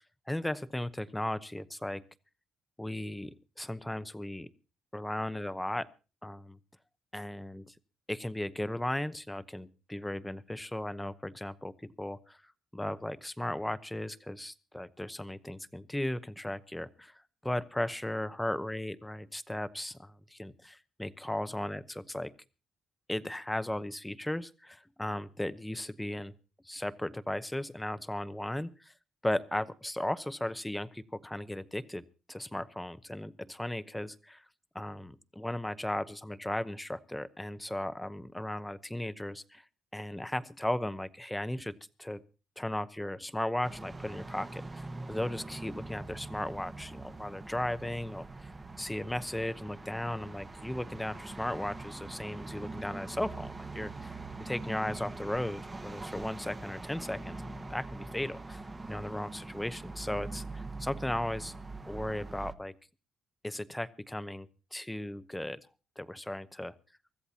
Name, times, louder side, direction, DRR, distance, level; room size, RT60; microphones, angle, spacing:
voice 1, 0.0-2.0 2.8-4.5 4.9-5.9 6.2-6.6 7.1-7.7 8.1-12.4 12.7-22.3 23.1-26.3 26.6-28.9 29.2-34.4 34.7-39.6 39.9-42.2 42.6-48.5 48.8-54.2 54.4-57.4 57.7-58.6 58.9-61.6 61.9-62.8 63.4-65.7 66.0-66.7, left 1 dB, 5° left, 14 dB, 0.8 m, -36 dB
sound 1, 43.6-62.5, right 3 dB, 20° right, 1.2 m, -43 dB
24.5 x 14.0 x 2.9 m, 0.33 s
cardioid pair, 90°, 0 cm